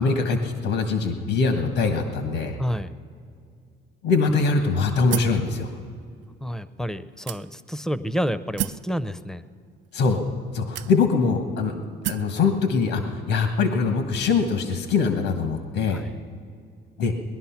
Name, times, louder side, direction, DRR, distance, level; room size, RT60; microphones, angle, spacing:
voice 1, 0.0-2.6 4.0-5.7 9.9-10.2 10.5-11.7 12.1-16.0 17.0-17.1, left 4 dB, 80° left, 6 dB, 1.3 m, -23 dB
voice 2, 2.6-2.9 6.4-9.4 15.9-16.1, equal, 5° left, 13 dB, 0.5 m, -29 dB
sound 1, 5.1-5.5 6.2-6.3 7.3-7.8 8.6-8.9 9.8-9.9 10.7-11.3 12.0-12.4, right 14 dB, 65° right, 0.4 m, -31 dB
20.0 x 11.0 x 5.8 m, 2.3 s
cardioid pair, 100°, 20 cm